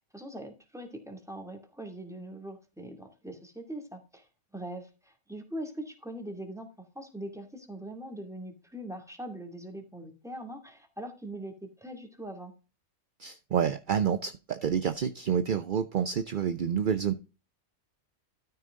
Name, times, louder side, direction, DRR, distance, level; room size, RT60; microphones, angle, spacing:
voice 1, 0.1-4.3 4.5-6.7 6.9-12.5, right 1 dB, ahead, 3 dB, 2.2 m, -42 dB
voice 2, 13.2-17.1, right 7 dB, 50° right, 11 dB, 0.6 m, -28 dB
13.0 x 5.7 x 3.7 m, 0.31 s
omnidirectional pair, 1.4 m